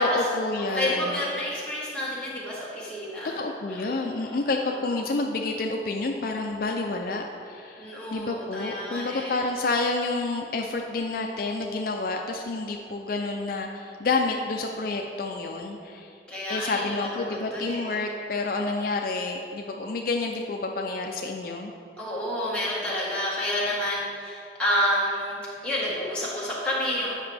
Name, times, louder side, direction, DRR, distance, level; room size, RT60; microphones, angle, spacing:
voice 1, 0.0-1.2 3.2-16.1 16.5-21.7, left 3 dB, 55° left, 2 dB, 0.4 m, -29 dB
voice 2, 0.7-3.4 3.7-3.9 7.8-9.4 16.3-18.0 22.0-27.1, left 1 dB, 5° left, -7 dB, 1.5 m, -29 dB
9.0 x 5.7 x 3.4 m, 2.5 s
head